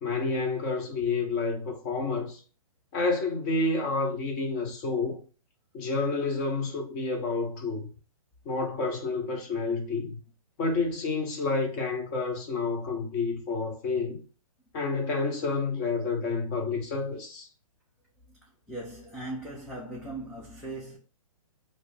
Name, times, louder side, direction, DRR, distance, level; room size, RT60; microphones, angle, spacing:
voice 1, 0.0-2.4 2.9-5.2 5.7-7.9 8.4-10.2 10.6-14.2 14.7-17.5, left 3 dB, 30° left, 0.8 m, -29 dB
voice 2, 18.7-21.0, right 2 dB, 5° left, 0.4 m, -39 dB
2.6 x 2.0 x 3.2 m
hypercardioid pair, 135°, 18 cm